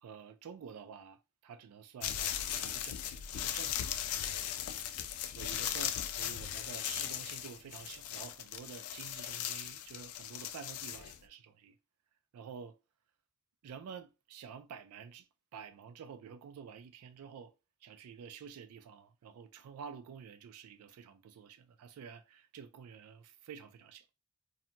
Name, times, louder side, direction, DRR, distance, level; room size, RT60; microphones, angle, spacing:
voice 1, 0.0-1.2 1.4-3.0 3.3-4.0 4.5-4.6 5.4-11.7 12.3-12.7 13.6-15.3 15.5-17.5 17.8-24.0, right 7 dB, 85° right, 0.3 m, -49 dB
sound 1, 2.0-11.2, left 10 dB, 85° left, 0.4 m, -38 dB
2.7 x 2.1 x 2.7 m
head